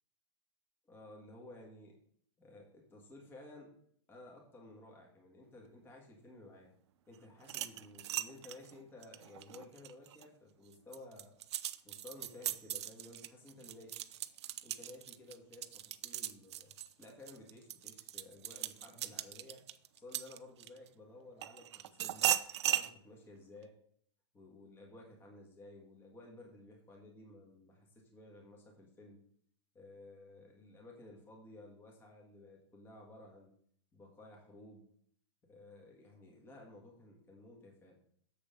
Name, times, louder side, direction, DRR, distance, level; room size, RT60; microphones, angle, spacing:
voice 1, 0.9-2.0 2.4-3.7 4.1-6.7 7.1-11.4 11.8-14.0 14.6-16.7 17.0-19.7 20.0-22.3 22.6-23.7 24.3-29.2 29.7-33.5 33.9-34.9 35.4-38.0, left 2 dB, 15° left, -1 dB, 1.9 m, -55 dB
sound 1, 7.4-10.2 10.7-20.9 21.4-22.9, right 12 dB, 70° right, 0.6 m, -38 dB
7.2 x 6.8 x 5.3 m, 0.63 s
supercardioid pair, 155°, 15 cm